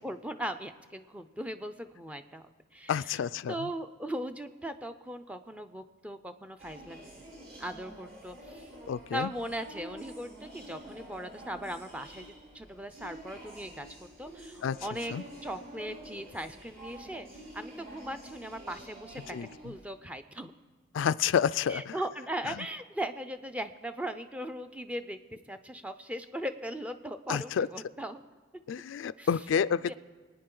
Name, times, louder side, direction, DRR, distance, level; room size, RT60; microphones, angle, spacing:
voice 1, 0.0-2.5 2.7-3.2 3.5-7.2 7.6-8.7 9.1-15.1 15.4-19.4 19.6-20.5 21.7-28.2 29.2-29.3 29.8-29.9, right 1 dB, 5° right, 9 dB, 0.5 m, -39 dB
voice 2, 2.9-3.7 8.9-9.3 14.6-14.8 15.1-15.2 19.3-19.5 20.9-21.9 22.6-22.7 27.3-27.7 28.7-29.9, left 7 dB, 90° left, 16 dB, 0.3 m, -29 dB
sound 1, 6.6-19.9, right 1 dB, 55° right, 3.8 m, -48 dB
24.0 x 9.4 x 3.8 m, 1.4 s
head